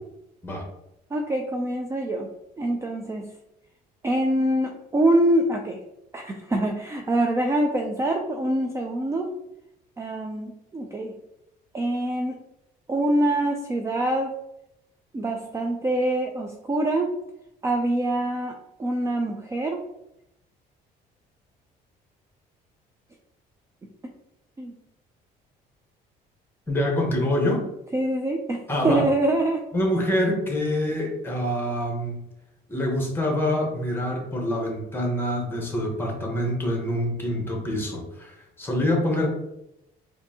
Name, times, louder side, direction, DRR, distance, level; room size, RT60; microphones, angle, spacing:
voice 1, 1.1-2.3 2.6-3.3 4.0-5.8 6.1-9.3 10.0-11.2 11.7-12.3 12.9-14.3 15.1-17.1 17.6-19.8 24.6-24.8 27.9-29.6, right 1 dB, 15° right, 3 dB, 0.4 m, -25 dB
voice 2, 26.7-27.6 28.7-29.1 29.7-32.2 32.7-39.3, left 1 dB, 15° left, 1 dB, 1.1 m, -25 dB
4.4 x 2.7 x 2.8 m, 0.83 s
cardioid pair, 110°, 17 cm